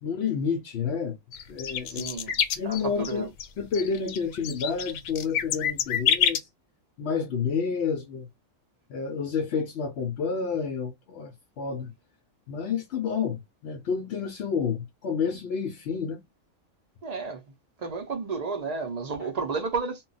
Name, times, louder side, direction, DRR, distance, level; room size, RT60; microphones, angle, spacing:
voice 1, 0.0-1.2 1.5-2.2 2.5-3.3 3.6-6.5 7.0-8.3 8.9-11.9 12.5-16.2, left 6 dB, 65° left, 0.7 m, -30 dB
sound 1, 1.3-3.1 3.4-3.5 3.7-6.4, left 9 dB, 85° left, 1.0 m, -27 dB
voice 2, 1.9-2.3 2.6-3.3 17.0-17.4 17.8-20.0, right 4 dB, 55° right, 0.4 m, -32 dB
2.2 x 2.2 x 3.8 m
omnidirectional pair, 1.4 m